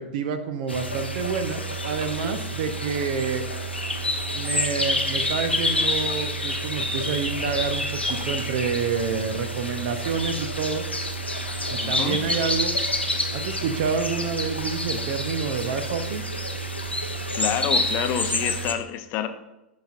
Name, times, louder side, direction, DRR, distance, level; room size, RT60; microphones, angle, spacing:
voice 1, 0.0-3.5 4.3-10.8 11.7-12.7 13.3-16.3, right 6 dB, 50° right, 10 dB, 0.7 m, -28 dB
sound 1, 0.7-18.7, equal, 85° left, 0.7 m, -28 dB
voice 2, 11.8-12.2 17.3-19.3, left 10 dB, 35° left, 8 dB, 0.6 m, -28 dB
11.5 x 4.2 x 2.4 m, 0.93 s
figure-of-eight pair, 95°, 6 cm